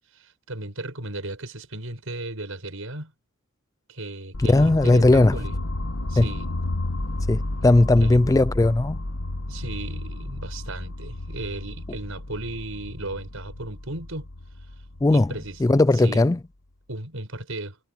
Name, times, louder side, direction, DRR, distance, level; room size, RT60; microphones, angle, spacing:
voice 1, 0.1-3.1 3.9-5.5 6.1-6.5 8.0-8.2 9.5-14.3 15.1-15.6 16.0-16.2 16.9-17.8, right 2 dB, 75° right, 5.7 m, -35 dB
sound 1, 4.3-16.3, left 2 dB, 75° left, 1.4 m, -32 dB
voice 2, 4.5-5.4 6.2-6.3 7.3-9.0 15.0-15.3 15.6-16.4, left 2 dB, 15° left, 0.3 m, -18 dB
head